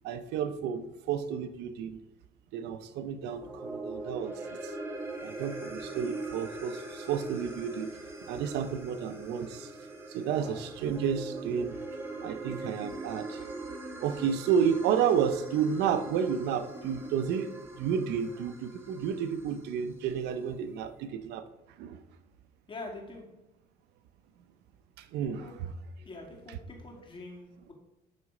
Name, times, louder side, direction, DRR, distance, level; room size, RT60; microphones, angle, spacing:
voice 1, 0.0-2.0 2.5-4.7 5.2-7.9 8.3-9.7 10.1-11.8 12.2-13.5 14.0-17.5 17.8-21.4 21.8-22.0 25.0-25.7 26.5-26.6, right 7 dB, 85° right, 11 dB, 0.7 m, -31 dB
sound 1, 3.2-19.7, right 2 dB, 15° right, 1.7 m, -42 dB
voice 2, 22.7-23.2 25.4-25.5 26.0-27.7, left 2 dB, 30° left, 0 dB, 2.6 m, -44 dB
12.0 x 4.2 x 4.9 m, 0.99 s
cardioid pair, 110°, 17 cm